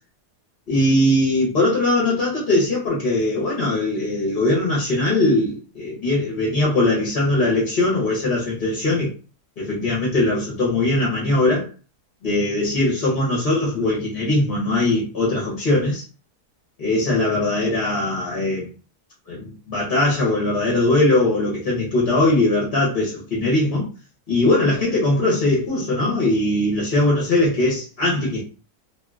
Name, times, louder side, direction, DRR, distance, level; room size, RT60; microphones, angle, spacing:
voice 1, 0.7-9.1 9.6-11.7 12.2-16.0 16.8-18.7 19.3-23.9 24.3-28.4, left 2 dB, 40° left, 1.0 m, -20 dB
2.8 x 2.6 x 2.3 m
omnidirectional pair, 1.7 m